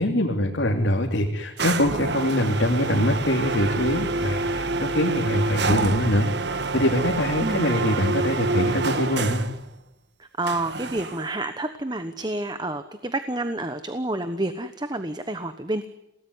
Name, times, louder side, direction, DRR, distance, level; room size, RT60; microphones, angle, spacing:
voice 1, 0.0-9.4, left 1 dB, 70° left, 0 dB, 3.1 m, -23 dB
sound 1, 1.6-9.6 10.5-11.4, right 3 dB, 65° right, 1.4 m, -27 dB
voice 2, 10.2-15.9, right 2 dB, 20° right, 9 dB, 1.2 m, -29 dB
29.0 x 18.5 x 9.8 m, 0.84 s
head